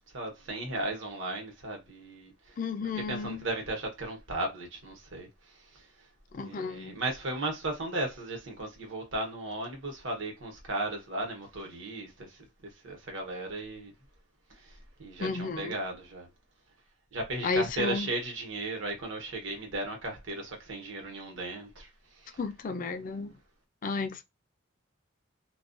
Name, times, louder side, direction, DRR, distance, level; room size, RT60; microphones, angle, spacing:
voice 1, 0.1-5.3 6.4-12.3 12.8-13.9 14.7-14.8 15.0-16.3 17.1-21.9 22.2-22.4, right 2 dB, 70° right, 0.9 m, -36 dB
voice 2, 2.6-3.5 6.3-7.0 15.2-15.8 17.4-18.1 22.4-23.4 23.8-24.2, left 4 dB, 40° left, 0.3 m, -33 dB
2.3 x 2.2 x 2.4 m
head